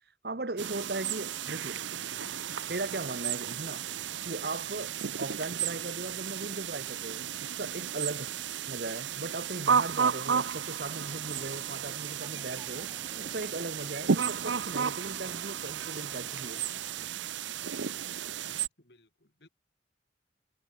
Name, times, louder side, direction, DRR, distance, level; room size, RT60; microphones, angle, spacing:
voice 1, 0.2-1.9 2.7-3.9 4.2-8.4 8.7-16.6, right 2 dB, 55° right, 1.2 m, -38 dB
sound 1, 0.6-18.7, right 7 dB, 80° right, 0.7 m, -33 dB
voice 2, 2.1-2.5 6.4-6.6 9.6-9.9 15.2-15.5 18.8-19.5, left 1 dB, 65° left, 3.6 m, -58 dB
sound 2, 10.8-17.1, right 1 dB, 15° right, 1.9 m, -53 dB
head